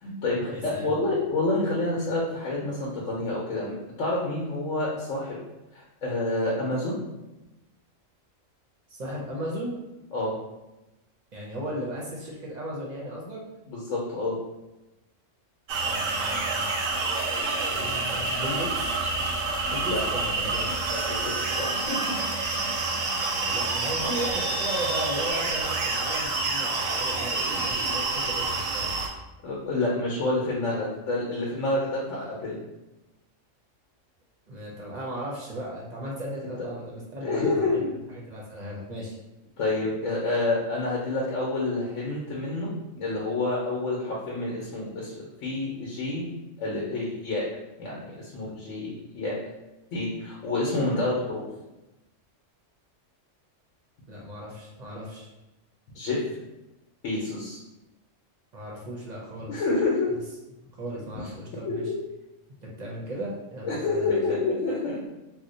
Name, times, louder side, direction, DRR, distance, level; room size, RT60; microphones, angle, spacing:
voice 1, 0.0-5.4 5.7-7.0 10.1-10.3 13.7-14.3 19.8-20.0 20.9-21.3 21.6-22.1 24.0-24.1 29.4-32.6 37.2-37.9 39.6-45.1 45.4-46.3 46.6-47.4 47.8-49.4 49.9-51.5 55.9-56.2 57.0-57.6 59.5-60.1 61.6-61.8 63.6-65.1, left 2 dB, 75° left, -4 dB, 1.1 m, -28 dB
voice 2, 0.5-0.9 8.9-9.8 11.3-13.4 15.8-16.7 17.7-19.0 19.7-20.7 23.5-28.9 34.5-37.8 38.3-39.2 54.1-55.3 58.5-59.6 60.6-61.9 62.6-64.2, equal, 45° right, -3 dB, 0.6 m, -36 dB
sound 1, 15.7-29.1, right 3 dB, 90° right, 1.0 m, -28 dB
2.7 x 2.1 x 3.8 m, 1.0 s
omnidirectional pair, 1.3 m